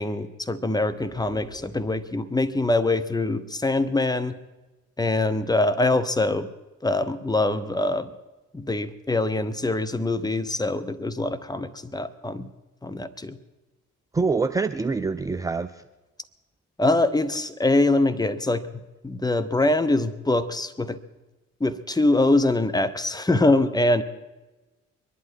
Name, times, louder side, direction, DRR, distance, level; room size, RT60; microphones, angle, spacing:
voice 1, 0.0-4.3 5.0-6.5 6.8-8.1 8.5-12.5 12.8-13.4 16.8-18.6 19.0-21.0 21.6-24.0, left 2 dB, 10° left, 10 dB, 1.0 m, -23 dB
sound 1, 0.9-2.4, left 1 dB, 80° left, 3.3 m, -46 dB
voice 2, 14.1-15.8, right 4 dB, 10° right, 11 dB, 0.4 m, -25 dB
23.0 x 11.0 x 4.8 m, 1.1 s
figure-of-eight pair, 45°, 39 cm